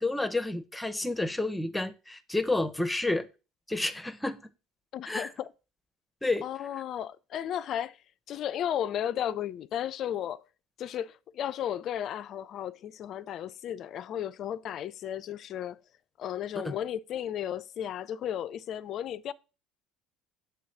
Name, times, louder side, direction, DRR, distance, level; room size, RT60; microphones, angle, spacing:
voice 1, 0.0-3.3 3.7-4.4 5.1-5.3 6.2-6.5 16.6-16.7, left 2 dB, 10° left, 0.8 m, -30 dB
voice 2, 4.9-5.5 6.4-8.0 8.3-10.4 10.8-15.8 16.2-19.3, left 10 dB, 50° left, 0.4 m, -34 dB
6.9 x 3.1 x 5.7 m
hypercardioid pair, 65°, 0 cm